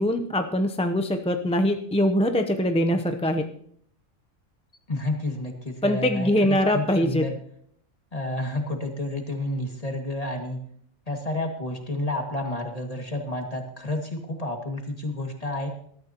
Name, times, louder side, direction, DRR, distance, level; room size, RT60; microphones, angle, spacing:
voice 1, 0.0-3.4 5.8-7.2, left 1 dB, 5° left, 6 dB, 0.5 m, -23 dB
voice 2, 4.9-7.3 8.1-10.6 11.1-15.7, left 1 dB, 30° left, 2 dB, 2.2 m, -30 dB
20.5 x 13.0 x 3.0 m, 0.65 s
omnidirectional pair, 1.4 m